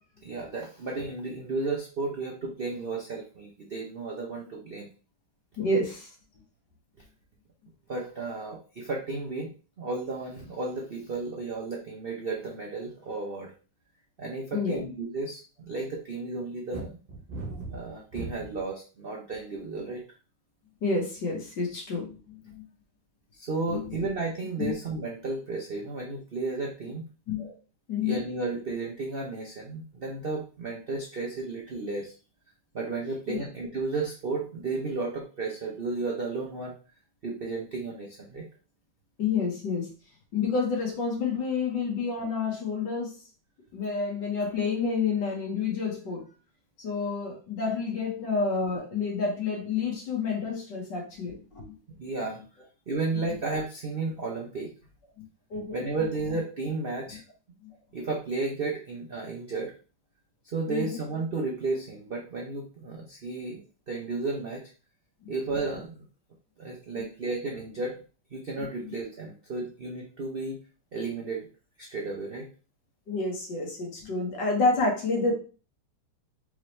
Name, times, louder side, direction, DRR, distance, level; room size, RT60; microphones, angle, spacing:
voice 1, 0.2-4.9 7.9-9.5 9.8-13.5 14.2-17.0 17.7-20.0 23.3-27.0 28.0-32.1 32.7-36.7 37.2-38.4 52.0-52.4 52.9-54.7 55.7-57.2 57.9-59.7 60.4-64.6 65.3-66.0 66.6-68.0 68.3-70.6 70.9-71.5 71.8-72.5, right 3 dB, 75° right, -2 dB, 0.5 m, -33 dB
voice 2, 5.6-6.1 14.5-14.8 20.8-22.7 23.7-23.9 24.6-24.7 27.3-27.6 27.9-28.2 33.3-33.4 39.2-39.8 40.3-43.1 43.7-46.2 46.8-51.8 55.2-55.3 55.5-55.8 60.7-61.0 65.2-65.3 67.0-67.1 73.1-75.3, left 4 dB, 65° left, 0 dB, 1.9 m, -29 dB
sound 1, 16.7-18.7 19.3-19.8, right 2 dB, 35° right, 1.0 m, -38 dB
4.8 x 3.1 x 3.2 m, 0.36 s
omnidirectional pair, 2.2 m